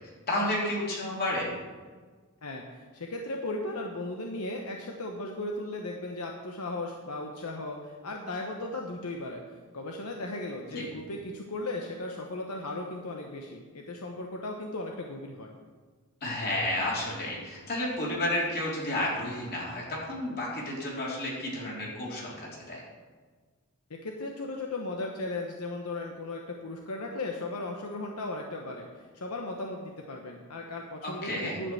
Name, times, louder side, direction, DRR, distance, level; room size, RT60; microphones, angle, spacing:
voice 1, 0.3-1.5 10.7-10.8 16.2-22.8 31.0-31.6, left 1 dB, 45° left, -5 dB, 3.7 m, -31 dB
voice 2, 2.4-15.5 23.9-28.9 29.1-31.7, left 2 dB, 80° left, 1 dB, 1.0 m, -36 dB
11.0 x 5.3 x 7.9 m, 1.4 s
head